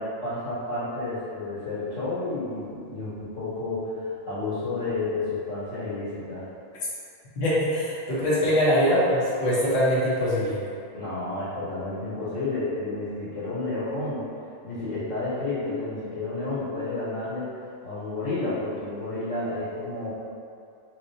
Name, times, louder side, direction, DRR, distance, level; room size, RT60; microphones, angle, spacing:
voice 1, 0.0-6.5 10.9-14.3 14.6-17.5 17.8-20.1, left 2 dB, 85° left, -11 dB, 1.9 m, -31 dB
voice 2, 7.4-10.6, equal, 55° left, -9 dB, 1.1 m, -23 dB
4.9 x 3.0 x 2.6 m, 2.5 s
omnidirectional pair, 1.3 m